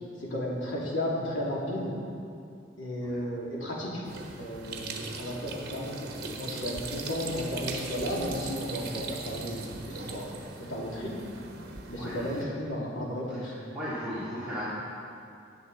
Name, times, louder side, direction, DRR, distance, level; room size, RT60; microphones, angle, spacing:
voice 1, 0.2-1.9 2.8-4.1 4.4-10.4 10.7-11.1 11.9-13.5, equal, 80° left, -5 dB, 2.8 m, -34 dB
sound 1, 4.0-12.4, right 3 dB, 55° right, 1.2 m, -40 dB
voice 2, 12.0-12.5 13.3-14.6, equal, 5° right, -13 dB, 2.5 m, -37 dB
16.5 x 8.6 x 4.0 m, 2.5 s
head